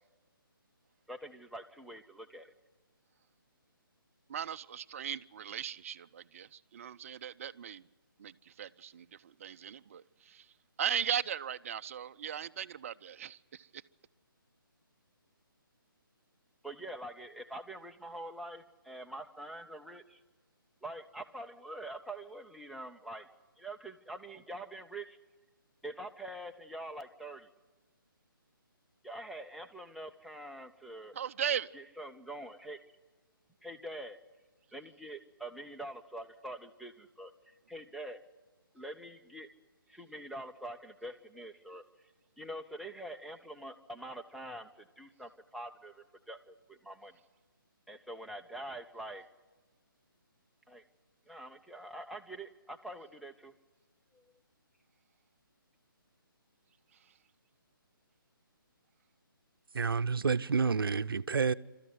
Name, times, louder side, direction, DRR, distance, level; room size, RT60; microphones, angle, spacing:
voice 1, 1.1-2.5 16.6-20.2 20.8-23.3 23.6-25.2 25.8-27.5 29.0-31.1 31.7-32.8 33.6-34.2 34.7-38.2 38.7-39.5 39.9-41.8 42.4-47.1 47.9-49.3 50.7-50.8 51.3-53.5 54.1-54.3, right 1 dB, ahead, 0.7 m, -45 dB
voice 2, 4.3-7.9 8.2-13.8 31.1-31.7 56.9-57.2, right 9 dB, 35° right, 0.6 m, -38 dB
voice 3, 59.7-61.5, right 5 dB, 75° right, 0.7 m, -29 dB
28.0 x 13.5 x 9.5 m
figure-of-eight pair, 150°, 12 cm